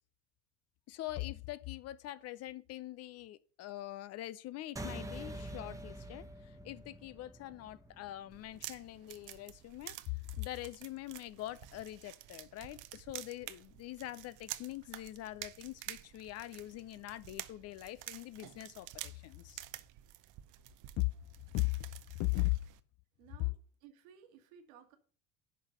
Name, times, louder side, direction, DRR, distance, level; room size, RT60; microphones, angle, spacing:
voice 1, 0.9-19.6 21.0-21.1 21.5-21.8 22.2-22.6, left 19 dB, 35° left, 0.4 m, -41 dB
sound 1, 4.8-9.6, right 1 dB, 5° right, 1.1 m, -46 dB
sound 2, 8.3-22.8, right 15 dB, 45° right, 0.7 m, -50 dB
voice 2, 23.2-23.5 23.8-25.0, right 8 dB, 65° right, 1.8 m, -57 dB
11.0 x 4.0 x 6.5 m
figure-of-eight pair, 70°, 44 cm